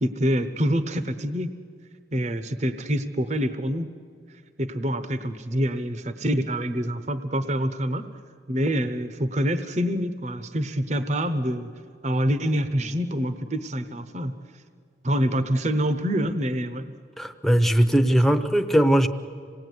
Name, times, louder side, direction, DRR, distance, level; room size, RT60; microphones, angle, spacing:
voice 1, 0.0-1.5 2.1-3.9 4.6-8.1 8.5-11.7 12.0-14.3 15.0-16.9, equal, 40° right, 10 dB, 0.9 m, -26 dB
voice 2, 17.2-19.1, right 1 dB, ahead, 7 dB, 0.9 m, -19 dB
27.0 x 18.5 x 9.5 m, 2.2 s
head